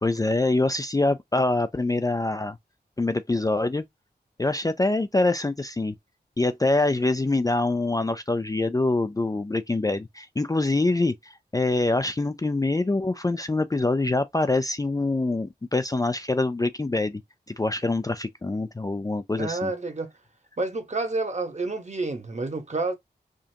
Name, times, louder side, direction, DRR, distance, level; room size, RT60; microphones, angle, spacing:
voice 1, 0.0-2.6 3.0-3.8 4.4-5.9 6.4-17.2 17.6-19.7, left 2 dB, 20° left, 0.4 m, -25 dB
voice 2, 19.4-20.1 20.6-23.0, right 3 dB, 40° right, 1.2 m, -29 dB
5.0 x 2.4 x 2.8 m
wide cardioid pair, 65°, 18 cm